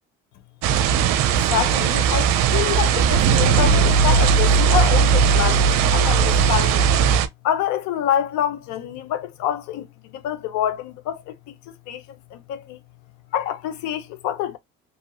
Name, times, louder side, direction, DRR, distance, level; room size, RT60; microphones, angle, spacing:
sound 1, 0.6-7.3, right 6 dB, 65° right, 0.5 m, -18 dB
voice 1, 1.5-6.9 7.4-9.8 10.1-11.3 11.9-12.0 12.3-12.8 13.3-14.6, left 11 dB, 75° left, 0.8 m, -26 dB
2.7 x 2.7 x 2.7 m
supercardioid pair, 85°, 30 cm